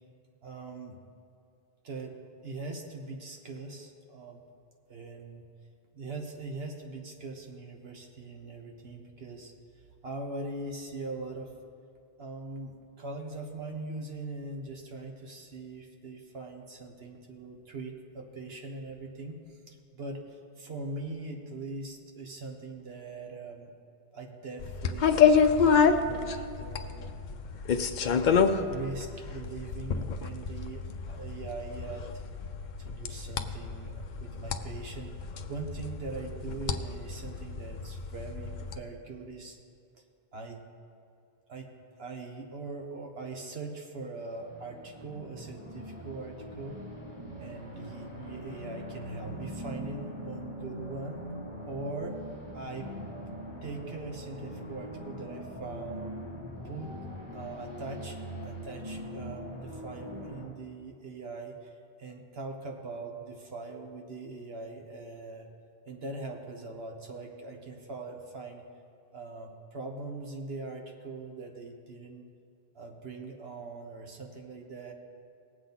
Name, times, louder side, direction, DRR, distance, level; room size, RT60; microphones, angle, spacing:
voice 1, 0.4-1.0 1.8-2.2 2.4-4.4 4.9-5.4 5.9-9.5 10.0-11.5 12.2-23.7 24.1-27.1 28.0-32.1 32.8-39.6 40.3-40.6 41.5-41.7 42.0-46.8 47.4-51.2 51.6-52.2 52.5-52.9 53.6-56.1 56.6-56.9 57.3-61.7 62.0-65.5 65.9-68.6 69.1-72.2 72.7-74.9, right 3 dB, 70° right, 2 dB, 1.5 m, -41 dB
sound 1, 24.6-38.8, left 6 dB, 55° left, 0.6 m, -28 dB
sound 2, 44.3-60.4, equal, 25° right, 2.6 m, -42 dB
19.0 x 7.9 x 4.0 m, 2.5 s
omnidirectional pair, 1.1 m